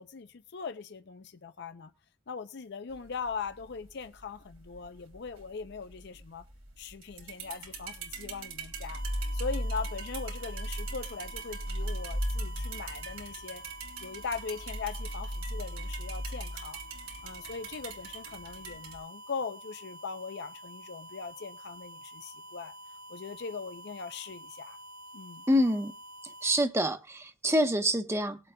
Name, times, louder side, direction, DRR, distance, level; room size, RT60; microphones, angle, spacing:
voice 1, 0.0-1.9 2.3-6.4 6.8-9.0 9.3-13.6 14.0-16.8 17.2-22.7 23.1-24.8 25.1-25.4, left 5 dB, 55° left, 0.5 m, -40 dB
sound 1, 2.9-19.0, right 1 dB, 85° right, 2.9 m, -38 dB
sound 2, 8.9-26.7, right 1 dB, 50° right, 1.3 m, -48 dB
voice 2, 25.5-25.9 26.4-28.4, equal, 15° right, 0.8 m, -26 dB
20.0 x 7.7 x 2.2 m
head